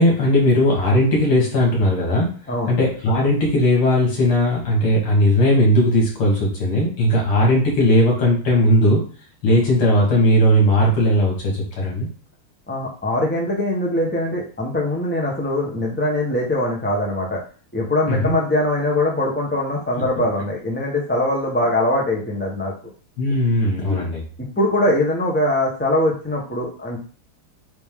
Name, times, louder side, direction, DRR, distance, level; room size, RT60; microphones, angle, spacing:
voice 1, 0.0-2.3 2.7-9.0 9.4-12.1 18.1-18.3 23.2-24.2, equal, 75° left, -2 dB, 3.0 m, -17 dB
voice 2, 12.7-17.4 17.7-22.7 23.9-24.0 24.6-27.0, left 1 dB, 10° left, -2 dB, 0.8 m, -22 dB
8.0 x 3.2 x 3.8 m, 0.40 s
omnidirectional pair, 2.4 m